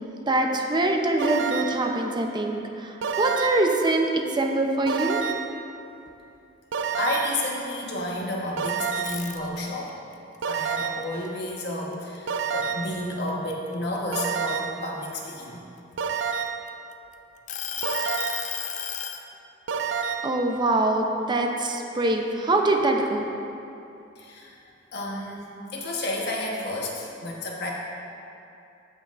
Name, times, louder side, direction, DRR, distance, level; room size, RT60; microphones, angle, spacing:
voice 1, 0.3-5.2 20.2-23.2, right 2 dB, 25° right, 2 dB, 0.6 m, -24 dB
sound 1, 1.2-1.9 3.0-3.8 4.9-5.6 6.7-7.5 8.6-9.3 10.4-11.2 12.3-13.0 14.1-14.9 16.0-16.7 17.8-18.6 19.7-20.4, right 6 dB, 75° right, 0.4 m, -29 dB
voice 2, 7.0-9.9 10.5-15.6 24.2-24.6 24.9-27.7, left 1 dB, 65° left, -3 dB, 1.3 m, -31 dB
sound 2, 8.9-9.9 10.3-12.2 12.6-12.8 13.3-15.1 15.8-16.9 17.5-19.2, left 9 dB, 40° left, 0.4 m, -33 dB
16.0 x 5.6 x 2.5 m, 2.7 s
head